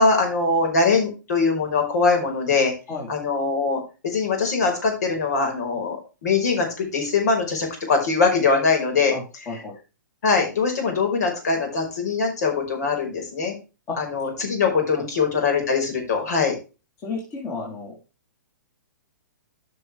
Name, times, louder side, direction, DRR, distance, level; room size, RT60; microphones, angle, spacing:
voice 1, 0.0-2.7 3.1-6.0 6.2-9.1 10.2-13.5 14.0-16.5, left 4 dB, 60° left, 3 dB, 5.2 m, -22 dB
voice 2, 9.1-9.8 13.9-14.0 14.9-15.0 17.0-17.9, left 4 dB, 30° left, -2 dB, 3.7 m, -32 dB
14.5 x 6.0 x 3.4 m, 0.31 s
figure-of-eight pair, 115°, 10 cm